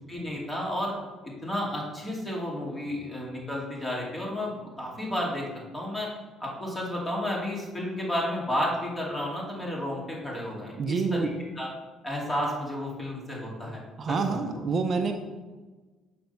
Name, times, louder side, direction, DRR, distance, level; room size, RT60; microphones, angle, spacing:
voice 1, 0.1-1.0 1.2-5.5 5.7-6.1 6.4-11.3 11.5-11.7 12.0-13.8 14.1-14.6, left 1 dB, 15° left, -3 dB, 2.8 m, -32 dB
voice 2, 10.8-11.3 14.0-15.1, right 4 dB, 45° right, 6 dB, 0.6 m, -27 dB
6.8 x 5.2 x 5.8 m, 1.3 s
supercardioid pair, 85°, 0 cm